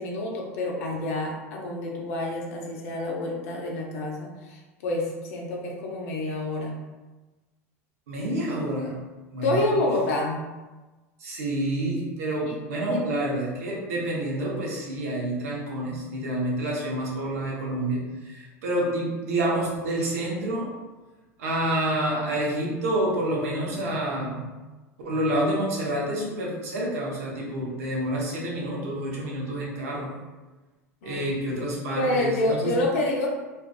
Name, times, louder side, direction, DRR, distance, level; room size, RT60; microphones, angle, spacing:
voice 1, 0.0-6.8 9.4-10.4 12.4-12.5 12.9-13.0 31.0-31.2 31.5-31.6 32.0-33.3, left 2 dB, 70° left, -1 dB, 0.6 m, -28 dB
voice 2, 8.1-9.0 9.3-9.9 11.2-20.7 21.4-24.5 25.0-30.1 31.0-32.7, right 1 dB, 75° right, -4 dB, 0.8 m, -28 dB
2.6 x 2.4 x 2.3 m, 1.2 s
hypercardioid pair, 85°, 8 cm